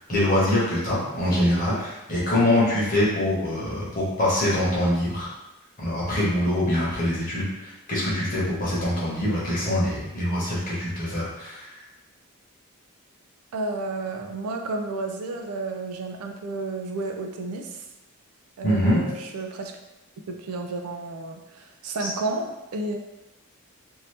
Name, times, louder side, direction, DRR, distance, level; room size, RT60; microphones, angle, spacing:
voice 1, 0.1-5.3 5.8-7.4 7.9-11.6 18.6-19.0 22.0-22.1, left 1 dB, 40° left, -7 dB, 1.1 m, -24 dB
voice 2, 13.5-17.8 18.6-19.7 20.3-23.0, right 3 dB, 80° right, 4 dB, 0.4 m, -31 dB
2.7 x 2.7 x 3.3 m, 1.0 s
head